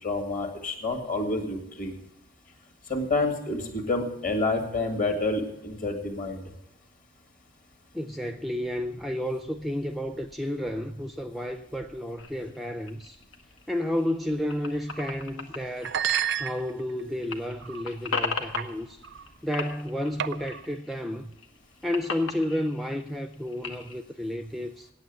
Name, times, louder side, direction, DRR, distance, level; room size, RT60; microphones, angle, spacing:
voice 1, 0.0-1.9 2.9-6.4, left 2 dB, 45° left, 1.9 m, -28 dB
voice 2, 7.9-13.2 13.7-16.0 16.4-19.0 19.4-21.3 21.8-24.9, left 1 dB, ahead, 0.4 m, -31 dB
sound 1, 12.2-16.9 17.2-19.3 19.5-21.0 21.3-24.0, left 4 dB, 85° left, 1.3 m, -37 dB
sound 2, 14.9-15.1 15.8-17.0 17.6-17.9 18.6-18.7 19.0-19.3 20.2-20.7, right 9 dB, 60° right, 0.4 m, -30 dB
8.9 x 8.6 x 9.3 m
head